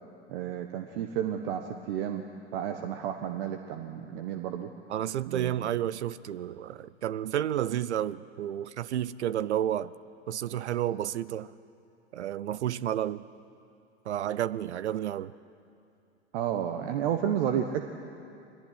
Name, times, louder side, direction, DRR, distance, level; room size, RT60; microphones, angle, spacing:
voice 1, 0.3-2.2 2.5-4.7 5.3-5.7 16.3-17.8, right 9 dB, 55° right, 6 dB, 1.4 m, -31 dB
voice 2, 4.9-9.9 10.3-11.5 12.1-13.2 14.1-15.3, right 11 dB, 70° right, 19 dB, 0.7 m, -31 dB
23.0 x 19.0 x 10.0 m, 2.6 s
figure-of-eight pair, 95°, 35 cm